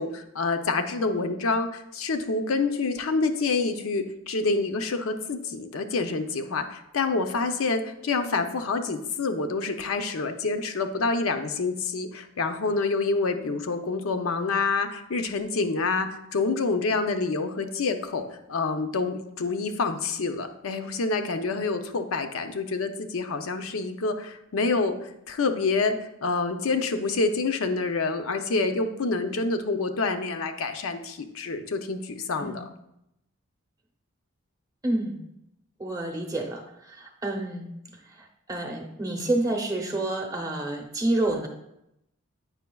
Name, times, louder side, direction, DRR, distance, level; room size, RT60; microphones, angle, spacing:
voice 1, 0.0-18.2 18.5-25.9 26.2-32.6, left 3 dB, 85° left, 7 dB, 0.6 m, -27 dB
voice 2, 34.8-35.2 35.8-37.7 38.5-41.5, right 2 dB, 15° right, 2 dB, 0.7 m, -28 dB
8.1 x 5.6 x 2.3 m, 0.83 s
head